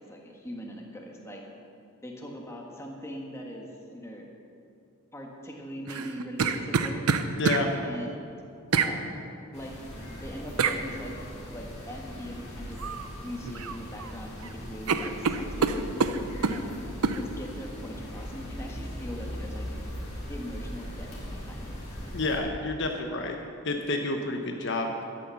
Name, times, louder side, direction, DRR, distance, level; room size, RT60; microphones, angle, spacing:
voice 1, 0.0-1.4 2.0-4.3 5.1-7.0 7.8-8.2 8.7-9.2 9.5-9.7 10.2-11.1 11.5-12.8 13.2-16.8 17.1-19.8 20.3-21.7, equal, 10° left, 0 dB, 1.4 m, -41 dB
sound 1, 5.9-7.6 8.7-8.9 10.6-10.8 12.8-13.1 13.4-14.1 14.4-14.5 14.9-16.6 17.0-17.2, right 5 dB, 80° right, 0.7 m, -26 dB
voice 2, 7.4-7.7 22.1-23.4 23.6-24.9, left 2 dB, 55° left, 3 dB, 0.9 m, -29 dB
sound 2, 9.5-22.4, equal, 30° left, 2.9 m, -39 dB
12.0 x 8.9 x 7.0 m, 2.5 s
head